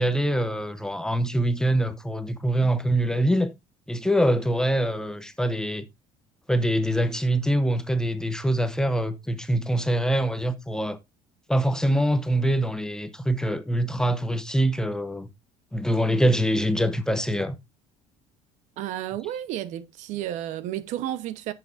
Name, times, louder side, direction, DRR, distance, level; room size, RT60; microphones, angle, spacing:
voice 1, 0.0-3.5 3.9-5.9 6.5-11.0 11.5-15.3 15.7-17.6, right 1 dB, 5° left, 0.7 m, -24 dB
voice 2, 18.8-21.5, right 12 dB, 60° right, 0.9 m, -32 dB
10.5 x 7.7 x 2.6 m
cardioid pair, 150°, 14 cm